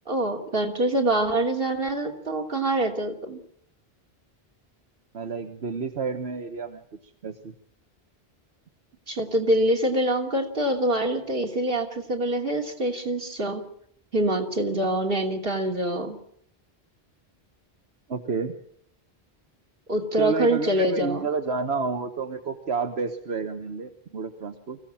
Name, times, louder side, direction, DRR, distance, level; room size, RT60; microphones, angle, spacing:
voice 1, 0.1-3.4 9.1-13.6 14.1-16.2 19.9-21.3, right 1 dB, 60° right, 2 dB, 3.1 m, -25 dB
voice 2, 5.1-6.8 7.2-7.5 18.1-18.5 20.2-24.8, right 4 dB, 80° right, 6 dB, 1.6 m, -30 dB
24.5 x 16.0 x 8.8 m, 0.68 s
omnidirectional pair, 1.1 m